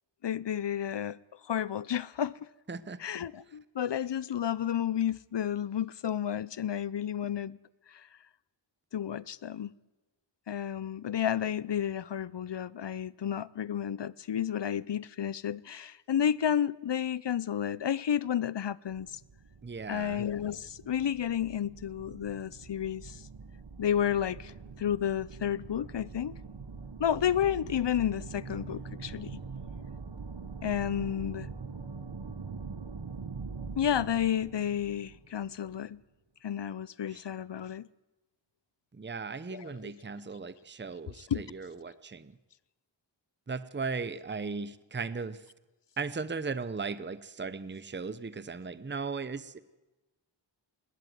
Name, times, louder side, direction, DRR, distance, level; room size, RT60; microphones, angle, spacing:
voice 1, 0.2-1.2 1.4-2.3 3.0-7.6 7.9-8.1 8.9-9.7 10.5-19.2 19.9-23.2 23.8-26.3 27.0-29.3 30.6-31.5 33.8-36.0 36.4-37.9 39.5-39.9 41.3-41.4, left 9 dB, 65° left, 0.6 m, -31 dB
voice 2, 2.7-3.0 19.6-20.2 37.1-37.2 38.9-42.4 43.5-45.4 46.0-49.6, right 4 dB, 25° right, 0.7 m, -37 dB
sound 1, 18.9-35.9, right 4 dB, 70° right, 1.4 m, -44 dB
20.0 x 16.0 x 9.4 m
wide cardioid pair, 65°, 45 cm